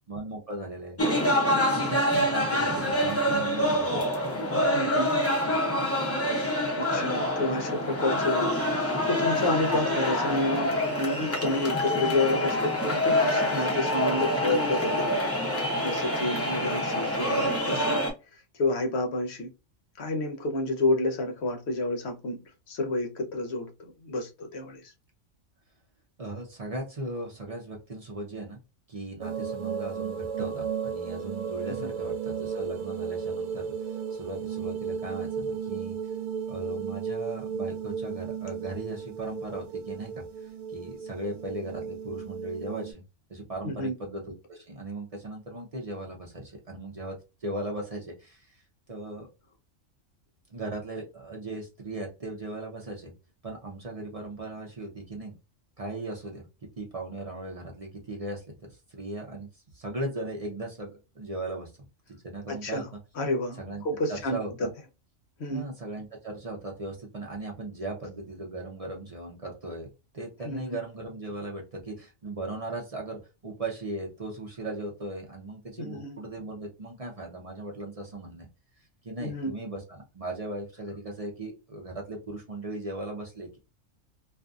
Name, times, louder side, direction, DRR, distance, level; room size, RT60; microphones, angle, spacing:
voice 1, 0.1-1.0 1.7-4.0 26.2-28.6 28.9-36.1 36.5-40.2 40.7-43.0 43.3-44.2 44.5-48.6 48.9-49.3 50.5-53.1 53.4-55.3 55.8-56.4 56.8-59.5 59.7-61.7 62.1-62.8 63.6-63.8 64.3-64.7 65.5-69.9 70.1-78.5 79.0-83.6, right 2 dB, 40° right, 0.5 m, -38 dB
sound 1, 1.0-18.1, left 1 dB, 20° left, 0.4 m, -26 dB
voice 2, 4.7-5.3 6.8-15.1 15.8-18.0 18.5-19.5 20.0-22.4 22.7-24.8 31.7-31.9 43.6-43.9 62.5-62.9 63.2-64.7 65.4-65.7 70.4-70.6 75.8-76.2 79.2-79.5, left 2 dB, 60° left, 0.9 m, -30 dB
sound 2, 29.2-42.9, right 6 dB, 90° right, 1.0 m, -34 dB
2.5 x 2.5 x 2.3 m
omnidirectional pair, 1.4 m